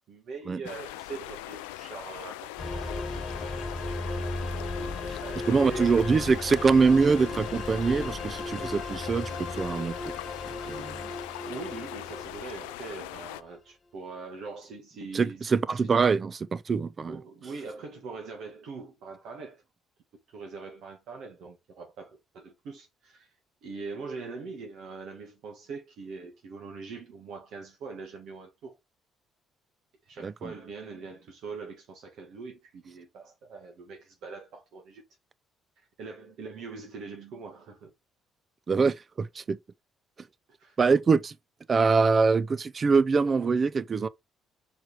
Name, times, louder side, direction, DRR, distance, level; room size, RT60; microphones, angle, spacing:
voice 1, 0.1-3.2 5.2-6.1 11.1-15.9 17.1-19.6 20.3-23.3 23.6-28.8 30.1-35.0 36.0-37.9 40.6-40.8, right 4 dB, 65° right, 1.7 m, -42 dB
sound 1, 0.6-13.4, left 17 dB, 85° left, 0.4 m, -41 dB
sound 2, 2.6-13.2, left 2 dB, 35° left, 1.3 m, -36 dB
voice 2, 5.4-10.1 10.7-11.1 15.1-17.2 30.2-30.5 38.7-39.6 40.8-41.4 41.7-44.1, right 4 dB, 40° right, 0.6 m, -24 dB
5.0 x 4.6 x 4.9 m
hypercardioid pair, 55°, 0 cm